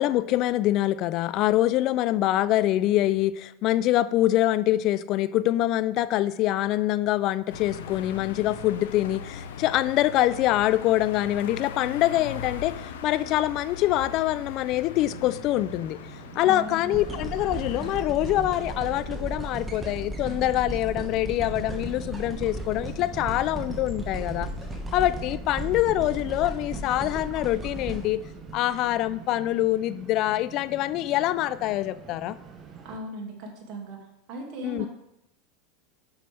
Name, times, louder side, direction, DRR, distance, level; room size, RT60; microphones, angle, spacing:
voice 1, 0.0-12.8 13.0-16.0 16.4-24.5 24.9-28.2 28.5-32.4 34.6-34.9, left 14 dB, 50° left, 15 dB, 0.3 m, -25 dB
sound 1, 7.5-18.0, left 6 dB, 80° left, 0.7 m, -40 dB
sound 2, 15.1-33.0, right 6 dB, 30° right, 1.1 m, -46 dB
voice 2, 16.4-17.0 32.8-34.0 34.3-34.9, right 1 dB, 50° right, 0 dB, 2.2 m, -37 dB
sound 3, 16.9-29.1 29.7-29.8, right 1 dB, 15° right, 1.6 m, -35 dB
7.8 x 6.6 x 3.4 m, 0.83 s
hypercardioid pair, 105°, 0 cm